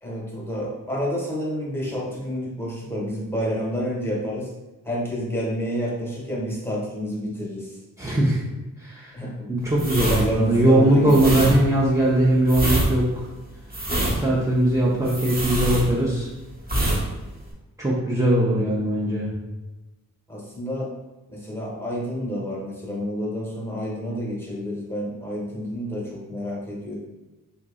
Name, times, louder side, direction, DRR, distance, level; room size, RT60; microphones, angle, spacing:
voice 1, 0.0-4.5 4.8-7.8 9.1-9.5 10.0-11.2 20.3-20.9 21.3-27.0, equal, 5° left, -4 dB, 1.1 m, -29 dB
voice 2, 8.0-8.4 8.8-9.1 9.5-13.3 14.0-16.3 17.8-19.3, right 1 dB, 10° right, -6 dB, 0.6 m, -20 dB
sound 1, 9.7-16.3 16.6-17.0 17.3-17.5, equal, 25° right, 1.0 m, -25 dB
3.0 x 2.7 x 3.7 m, 1.1 s
wide cardioid pair, 80°, 35 cm